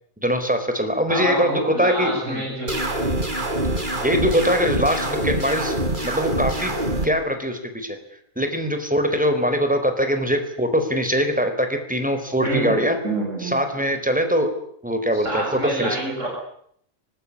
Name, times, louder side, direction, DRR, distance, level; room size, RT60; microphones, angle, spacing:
voice 1, 0.2-2.5 4.0-5.8 6.0-6.8 7.0-8.0 8.4-13.0 13.4-14.5 14.8-16.0, equal, 5° right, 7 dB, 4.0 m, -22 dB
voice 2, 1.1-2.7 12.4-12.8 13.0-13.6 15.1-16.3, right 2 dB, 60° right, -1 dB, 7.6 m, -26 dB
sound 1, 2.7-7.1, right 1 dB, 35° right, 4.0 m, -25 dB
24.5 x 20.0 x 9.8 m, 0.67 s
omnidirectional pair, 1.4 m